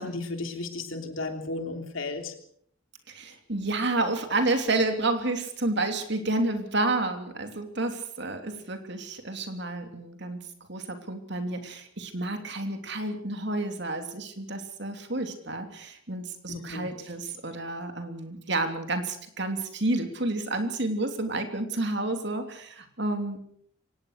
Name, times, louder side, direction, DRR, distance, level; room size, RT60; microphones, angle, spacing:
voice 1, 0.0-2.3 16.5-16.9, left 2 dB, 65° left, 6 dB, 3.3 m, -34 dB
voice 2, 3.1-10.4 10.7-23.4, right 2 dB, 55° right, 6 dB, 3.2 m, -30 dB
24.0 x 19.0 x 6.7 m, 0.65 s
head